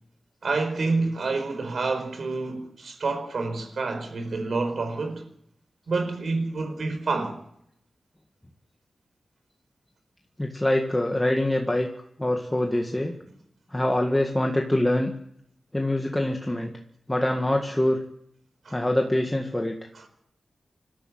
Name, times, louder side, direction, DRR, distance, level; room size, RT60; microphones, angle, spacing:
voice 1, 0.4-5.2 5.9-7.4 18.6-18.8 19.9-20.0, right 3 dB, 60° right, 4.7 m, -28 dB
voice 2, 10.4-11.9 12.2-13.2 13.7-15.1 15.7-16.7 17.1-18.0 18.7-19.8, left 1 dB, 10° left, 1.8 m, -24 dB
26.5 x 13.0 x 9.1 m
wide cardioid pair, 150°, 0 cm